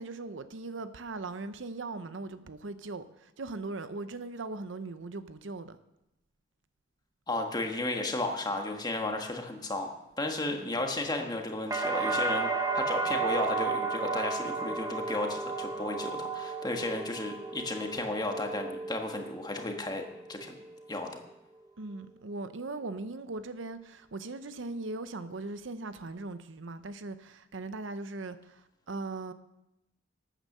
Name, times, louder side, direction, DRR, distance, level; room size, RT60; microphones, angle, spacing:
voice 1, 0.0-5.8 10.6-10.8 21.8-29.3, right 3 dB, 70° right, 0.7 m, -39 dB
voice 2, 7.3-9.9 10.2-20.0 20.3-20.6 20.9-21.2, left 2 dB, 20° left, 1.5 m, -34 dB
sound 1, 11.7-19.6 20.0-20.6, right 4 dB, 20° right, 1.0 m, -33 dB
12.5 x 9.1 x 6.7 m
head